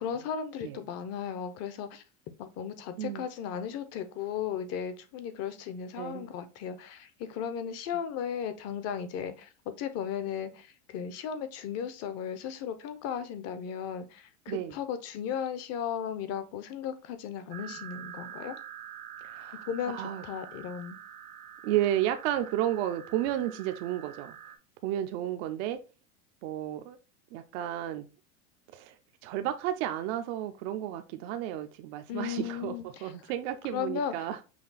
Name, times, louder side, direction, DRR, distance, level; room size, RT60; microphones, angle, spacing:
voice 1, 0.0-2.0 2.4-18.6 19.7-21.0 32.1-33.1 33.7-34.3, left 8 dB, 35° left, 0.7 m, -36 dB
voice 2, 6.0-6.3 14.5-14.8 19.2-19.7 19.9-20.2 21.6-24.4 24.8-25.8 26.4-27.0 27.3-28.1 28.7-28.9 29.2-32.7 33.0-34.4, right 12 dB, 50° right, 0.5 m, -32 dB
sound 1, 17.5-24.6, right 9 dB, 90° right, 1.1 m, -46 dB
5.8 x 2.3 x 4.0 m
supercardioid pair, 130°, 43 cm